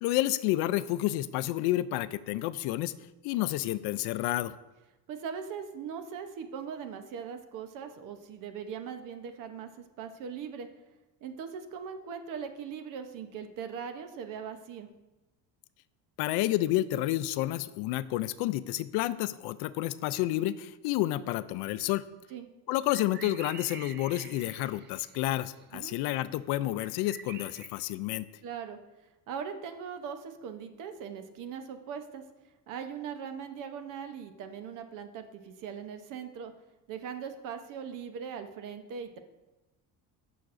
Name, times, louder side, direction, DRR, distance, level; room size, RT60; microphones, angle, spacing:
voice 1, 0.0-2.9 3.2-4.5 16.2-22.0 22.7-28.3, left 15 dB, 90° left, 15 dB, 0.5 m, -30 dB
voice 2, 5.1-10.7 11.2-14.9 22.3-22.5 25.7-26.0 28.4-28.8 29.3-32.2 32.7-36.5 36.9-39.2, right 7 dB, 55° right, 7 dB, 0.8 m, -40 dB
sound 1, 22.8-25.9 26.1-27.7, right 7 dB, 30° right, 0.4 m, -48 dB
14.5 x 5.9 x 2.5 m, 1.1 s
cardioid pair, 175°, 39 cm